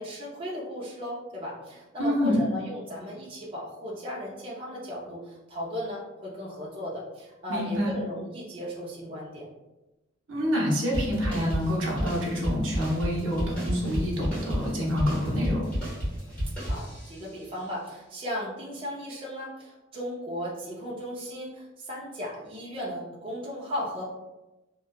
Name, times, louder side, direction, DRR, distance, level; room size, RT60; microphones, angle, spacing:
voice 1, 0.0-9.5 16.7-24.0, equal, 30° right, -6 dB, 0.5 m, -36 dB
voice 2, 2.0-2.4 7.5-7.9 10.3-15.6, equal, 75° right, -3 dB, 0.7 m, -27 dB
sound 1, 10.9-17.3, equal, 5° left, 1.2 m, -32 dB
2.7 x 2.2 x 2.2 m, 1.0 s
head